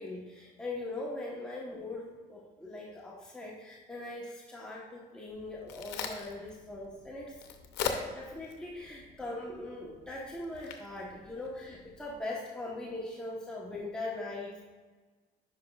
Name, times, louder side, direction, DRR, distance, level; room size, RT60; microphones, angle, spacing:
voice 1, 0.0-7.4 7.8-14.6, left 2 dB, 5° left, -4 dB, 1.0 m, -41 dB
Crack, 5.3-12.2, left 7 dB, 90° left, 0.7 m, -42 dB
10.5 x 5.2 x 2.3 m, 1.3 s
cardioid pair, 110°, 17 cm